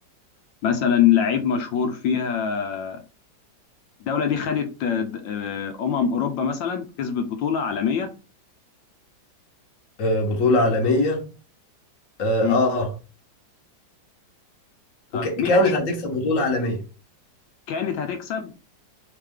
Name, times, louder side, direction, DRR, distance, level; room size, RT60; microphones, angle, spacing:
voice 1, 0.6-3.0 4.0-8.1 12.4-12.5 15.1-15.7 17.7-18.5, left 8 dB, 80° left, 1.4 m, -24 dB
voice 2, 10.0-11.2 12.2-12.9 15.1-16.8, left 1 dB, 50° left, 1.4 m, -21 dB
3.7 x 3.3 x 3.5 m
omnidirectional pair, 2.0 m